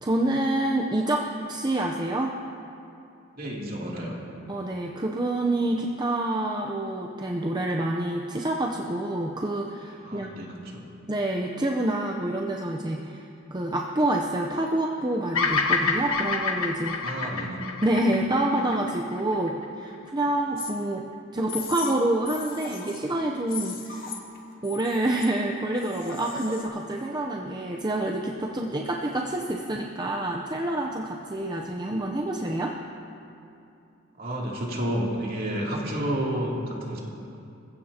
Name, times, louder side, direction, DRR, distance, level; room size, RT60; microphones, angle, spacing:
voice 1, 0.0-2.4 4.5-10.3 11.1-17.0 17.8-21.1 21.3-24.1 24.6-32.8, right 1 dB, 20° right, 0 dB, 0.7 m, -27 dB
voice 2, 3.3-4.1 10.0-10.8 17.0-17.6 34.2-37.0, right 1 dB, 45° right, -4 dB, 3.0 m, -30 dB
Bird vocalization bird call bird song, 15.3-19.6, left 4 dB, 80° left, 1.4 m, -27 dB
sound 1, 20.6-20.7 21.4-21.9 22.2-23.1 23.5-24.4 24.6-25.3 25.8-26.6, left 6 dB, 45° left, 1.8 m, -37 dB
26.5 x 15.5 x 2.9 m, 2.7 s
head